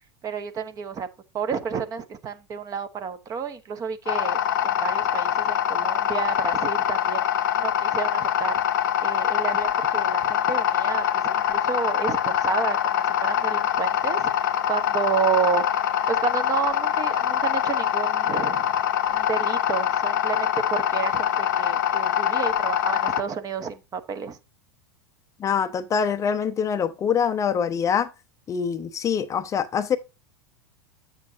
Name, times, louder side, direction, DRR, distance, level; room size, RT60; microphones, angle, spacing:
voice 1, 0.2-1.1 1.3-8.6 9.0-18.7 19.1-24.4, right 7 dB, 30° right, 1.2 m, -30 dB
sound 1, 4.1-23.2, left 10 dB, 65° left, 1.0 m, -24 dB
voice 2, 25.4-28.1 28.5-30.0, left 7 dB, 25° left, 0.7 m, -24 dB
8.8 x 7.3 x 2.7 m
figure-of-eight pair, 90°, 12 cm